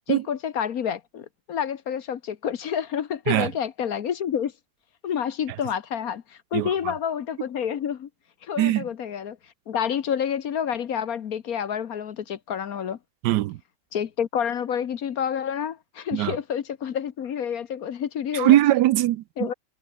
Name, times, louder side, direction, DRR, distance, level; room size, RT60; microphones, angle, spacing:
voice 1, 0.1-4.5 5.0-8.1 8.4-9.4 9.7-13.0 13.9-18.6 19.4-19.5, left 8 dB, 55° left, 1.4 m, -29 dB
voice 2, 13.2-13.6 16.1-16.4 18.3-19.2, right 15 dB, 75° right, 1.1 m, -20 dB
omnidirectional pair, 1.9 m